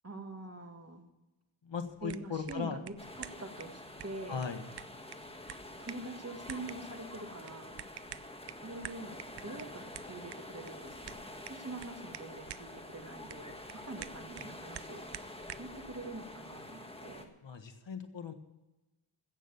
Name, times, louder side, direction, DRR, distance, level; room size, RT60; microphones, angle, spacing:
voice 1, 0.0-1.0 2.0-4.5 5.8-7.8 8.6-11.2 11.5-15.0 15.6-17.3, right 2 dB, 30° right, 5 dB, 1.9 m, -45 dB
voice 2, 1.6-2.8 4.3-4.6 17.4-18.3, left 6 dB, 65° left, 7 dB, 1.5 m, -38 dB
sound 1, 1.9-15.8, right 10 dB, 55° right, 0.5 m, -50 dB
sound 2, 3.0-17.3, left 1 dB, 10° left, 1.4 m, -47 dB
16.0 x 7.1 x 6.9 m, 1.0 s
wide cardioid pair, 90°, 48 cm